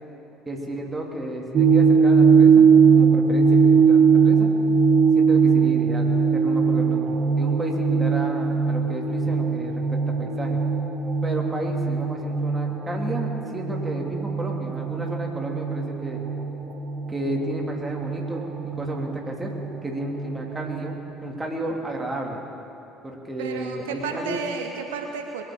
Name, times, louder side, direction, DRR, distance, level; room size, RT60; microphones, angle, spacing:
voice 1, 0.4-2.7 2.9-4.5 5.1-10.6 11.2-16.2 17.1-19.5 19.8-22.4 23.0-24.4, right 1 dB, 20° right, 0 dB, 2.8 m, -32 dB
sound 1, 1.5-21.0, right 5 dB, 45° right, 1.7 m, -20 dB
voice 2, 23.4-25.4, right 5 dB, 75° right, 4 dB, 0.9 m, -32 dB
22.0 x 7.6 x 7.2 m, 2.8 s
figure-of-eight pair, 60°, 0 cm